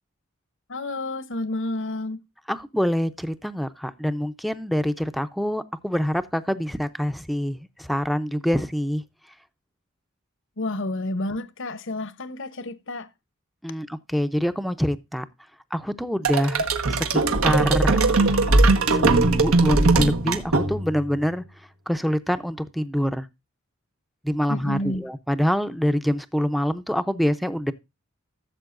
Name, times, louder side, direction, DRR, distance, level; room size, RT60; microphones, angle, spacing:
voice 1, 0.7-2.2 10.6-13.1 24.5-25.1, left 2 dB, 60° left, 0.9 m, -30 dB
voice 2, 2.5-9.0 13.6-15.2 15.7-18.0 18.9-21.4 21.9-23.3 24.2-27.7, equal, ahead, 0.6 m, -25 dB
sound 1, 16.2-21.1, right 3 dB, 80° right, 1.3 m, -20 dB
15.5 x 7.3 x 2.5 m
head